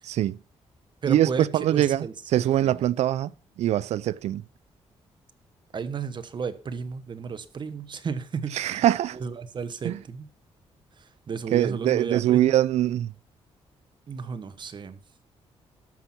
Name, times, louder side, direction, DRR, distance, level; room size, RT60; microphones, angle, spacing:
voice 1, 0.0-0.4 1.1-2.1 2.3-3.3 3.6-4.4 8.5-9.2 9.8-10.0 11.5-13.1, right 12 dB, 80° right, 0.4 m, -23 dB
voice 2, 1.0-2.1 2.6-2.8 5.7-8.8 9.1-10.3 11.0-12.5 14.1-15.0, right 5 dB, 45° right, 1.1 m, -33 dB
13.5 x 5.9 x 6.0 m
cardioid pair, 105°, 11 cm